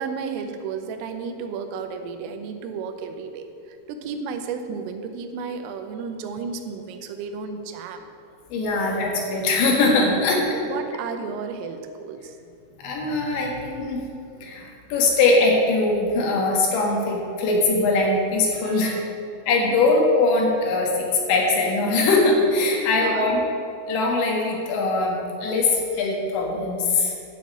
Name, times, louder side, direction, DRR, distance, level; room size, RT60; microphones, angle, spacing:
voice 1, 0.0-8.1 10.5-12.8 18.6-19.1 19.7-19.8 22.8-23.3, right 5 dB, 85° right, 6 dB, 3.4 m, -33 dB
voice 2, 8.5-10.4 12.8-14.0 14.4-19.1 19.5-23.4 23.9-27.1, left 3 dB, 70° left, -1 dB, 3.7 m, -21 dB
11.5 x 6.4 x 8.4 m, 2.5 s
omnidirectional pair, 5.8 m